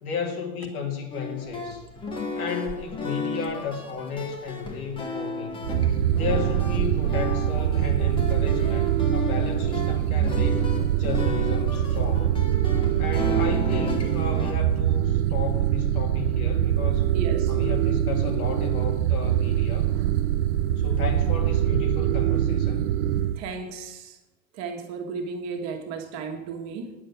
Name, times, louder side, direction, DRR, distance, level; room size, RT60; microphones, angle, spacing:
voice 1, 0.0-1.8 2.4-5.7 6.1-10.7 11.0-12.5 13.0-17.1 17.5-19.9 20.8-22.8, left 6 dB, 85° left, 3 dB, 2.3 m, -33 dB
sound 1, 1.1-14.5, left 3 dB, 10° left, 0.9 m, -34 dB
sound 2, 5.6-23.4, right 11 dB, 90° right, 0.7 m, -23 dB
voice 2, 17.1-17.6 19.8-20.1 23.3-24.2 24.5-26.9, right 5 dB, 40° right, 3 dB, 1.6 m, -34 dB
9.8 x 6.5 x 7.0 m, 1.0 s
supercardioid pair, 150°, 42 cm